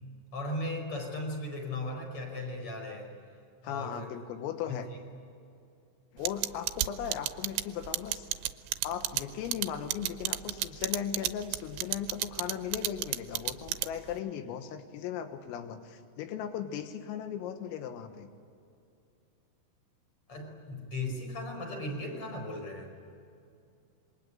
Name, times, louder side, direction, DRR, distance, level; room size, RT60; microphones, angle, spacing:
voice 1, 0.3-3.1 3.6-4.1 4.7-4.8 20.3-22.9, left 1 dB, 30° left, 3 dB, 5.5 m, -37 dB
voice 2, 3.6-4.9 6.1-8.3 8.8-18.3, left 9 dB, 90° left, 7 dB, 4.1 m, -37 dB
sound 1, 6.3-14.2, right 15 dB, 75° right, 2.8 m, -31 dB
27.0 x 23.5 x 9.0 m, 2.5 s
omnidirectional pair, 5.9 m